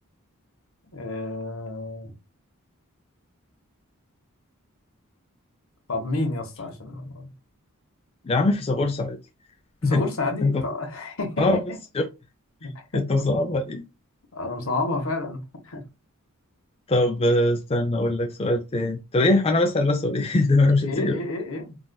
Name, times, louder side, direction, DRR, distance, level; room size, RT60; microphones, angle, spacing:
voice 1, 0.9-2.1 5.9-7.3 9.8-11.8 12.6-13.2 14.3-15.8 20.8-21.8, left 2 dB, 70° left, 1.0 m, -30 dB
voice 2, 8.2-9.2 9.8-10.0 10.4-10.6 11.4-11.6 11.9-12.0 12.9-13.8 16.9-21.2, left 2 dB, 25° left, 0.4 m, -22 dB
3.8 x 2.4 x 2.2 m
head